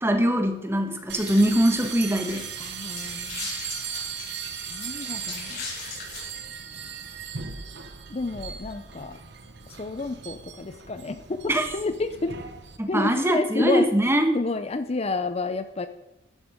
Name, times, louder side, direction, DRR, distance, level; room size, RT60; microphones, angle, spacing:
voice 1, 0.0-2.5 11.5-11.6 12.8-14.3, equal, 15° right, 6 dB, 1.3 m, -22 dB
sound 1, 1.1-12.8, right 7 dB, 60° right, 1.0 m, -37 dB
sound 2, 1.2-6.3, left 5 dB, 55° left, 4.6 m, -40 dB
voice 2, 2.6-3.5 4.7-5.6 8.1-9.2 9.7-12.4 12.9-15.9, left 3 dB, 35° left, 10 dB, 0.6 m, -30 dB
12.0 x 10.5 x 5.1 m, 0.88 s
head